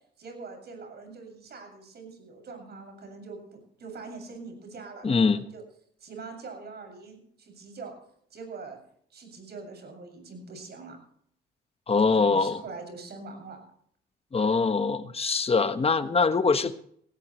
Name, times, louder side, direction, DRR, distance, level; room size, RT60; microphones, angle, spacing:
voice 1, 0.2-5.6 6.0-7.9 8.3-8.8 9.1-11.0 12.0-13.6, right 4 dB, 55° right, 4 dB, 7.4 m, -43 dB
voice 2, 5.0-5.5 11.9-12.6 14.3-16.7, left 4 dB, 30° left, 10 dB, 1.3 m, -23 dB
19.0 x 17.0 x 3.3 m, 0.65 s
cardioid pair, 90°, 20 cm